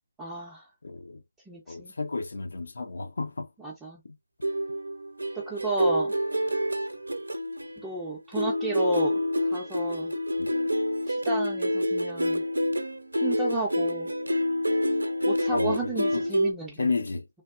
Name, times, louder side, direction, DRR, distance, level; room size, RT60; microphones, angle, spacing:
voice 1, 0.2-0.7 1.5-1.9 3.6-4.0 5.3-6.1 7.8-9.2 9.5-10.1 11.1-12.4 13.2-14.1 15.2-16.9, right 2 dB, 5° right, 0.5 m, -32 dB
voice 2, 0.8-1.2 1.7-3.5 4.0-4.1 10.4-10.5 15.5-16.3 16.8-17.2, left 3 dB, 60° left, 0.5 m, -32 dB
sound 1, 4.4-8.1 8.4-16.5, equal, 75° right, 0.5 m, -27 dB
3.3 x 2.0 x 2.4 m
figure-of-eight pair, 150°, 0 cm